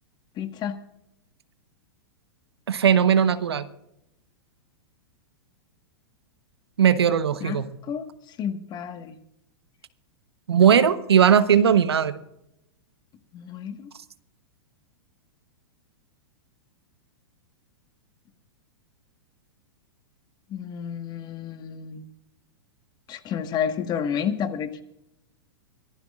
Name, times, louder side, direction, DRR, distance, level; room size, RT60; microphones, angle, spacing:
voice 1, 0.4-0.8 7.4-9.2 13.3-13.9 20.5-22.0 23.1-24.8, left 8 dB, 30° left, 9 dB, 1.5 m, -31 dB
voice 2, 2.7-3.6 6.8-7.7 10.5-12.1, right 8 dB, 80° right, 13 dB, 1.1 m, -18 dB
24.5 x 15.0 x 2.5 m, 0.83 s
hypercardioid pair, 105°, 13 cm